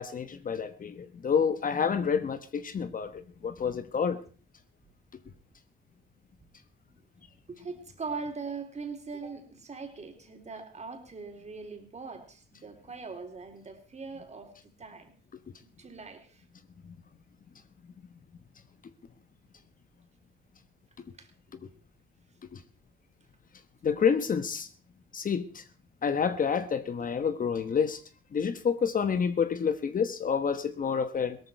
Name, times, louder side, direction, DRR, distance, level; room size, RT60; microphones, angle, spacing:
voice 1, 0.0-4.2 23.8-24.7 25.1-25.4 26.0-28.0 28.3-31.4, left 6 dB, 45° left, 1.2 m, -28 dB
voice 2, 7.5-14.5 14.8-15.1 15.8-16.4 21.2-21.3, right 4 dB, 35° right, 3.9 m, -41 dB
17.5 x 13.5 x 4.7 m
cardioid pair, 90°, 20 cm